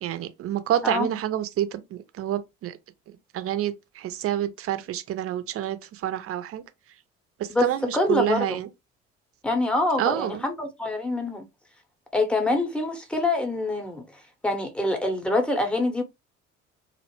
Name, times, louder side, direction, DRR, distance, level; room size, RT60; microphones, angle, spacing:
voice 1, 0.0-2.8 3.1-6.6 7.4-8.7 10.0-10.5, right 12 dB, 40° right, 0.6 m, -28 dB
voice 2, 7.9-8.6 9.4-11.5 12.1-14.0 14.4-16.0, left 2 dB, 5° left, 0.8 m, -25 dB
2.5 x 2.0 x 2.9 m
figure-of-eight pair, 50°, 35 cm